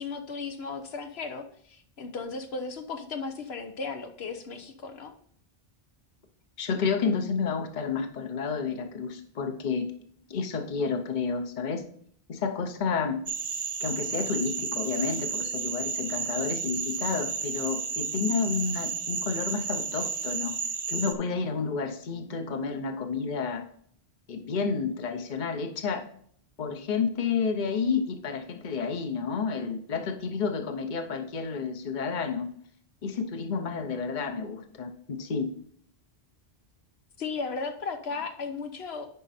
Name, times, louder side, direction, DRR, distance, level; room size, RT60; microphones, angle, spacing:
voice 1, 0.0-5.1 37.2-39.1, left 4 dB, 80° left, 6 dB, 1.1 m, -35 dB
voice 2, 6.6-9.9 10.3-11.8 12.3-13.2 13.8-20.6 20.9-23.6 24.3-26.0 26.6-32.5 33.0-35.5, left 5 dB, 50° left, 6 dB, 1.0 m, -30 dB
sound 1, 13.3-21.1, right 5 dB, 50° right, 1.0 m, -32 dB
9.5 x 5.1 x 4.2 m, 0.62 s
omnidirectional pair, 1.0 m